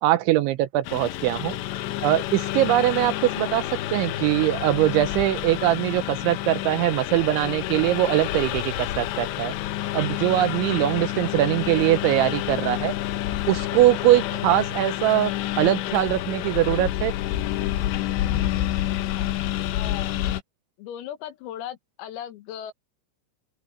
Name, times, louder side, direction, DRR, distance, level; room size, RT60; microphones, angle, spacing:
voice 1, 0.0-1.6 2.0-3.6 3.9-9.5 9.9-12.9 13.5-15.3 15.6-17.1, right 14 dB, 80° right, 2.8 m, -22 dB
Engine, 0.8-20.4, left 14 dB, 75° left, 2.9 m, -28 dB
voice 2, 19.7-20.2 20.8-22.7, left 10 dB, 90° left, 4.5 m, -37 dB
open air
omnidirectional pair, 5.9 m